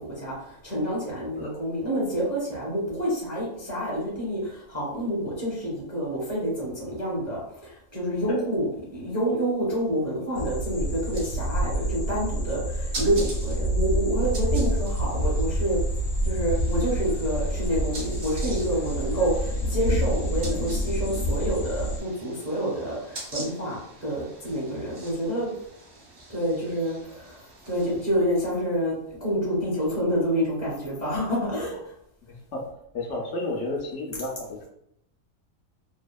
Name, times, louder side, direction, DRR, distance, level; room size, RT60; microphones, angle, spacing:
voice 1, 0.0-15.8 16.2-25.5 26.3-27.4 27.7-31.7, equal, 15° right, -6 dB, 0.6 m, -28 dB
sound 1, 10.3-22.0, equal, 90° left, 1.1 m, -27 dB
sound 2, 10.7-28.0, right 1 dB, 50° right, 0.8 m, -44 dB
voice 2, 32.9-34.6, left 2 dB, 70° left, -2 dB, 0.8 m, -31 dB
2.7 x 2.3 x 2.2 m, 0.75 s
omnidirectional pair, 1.5 m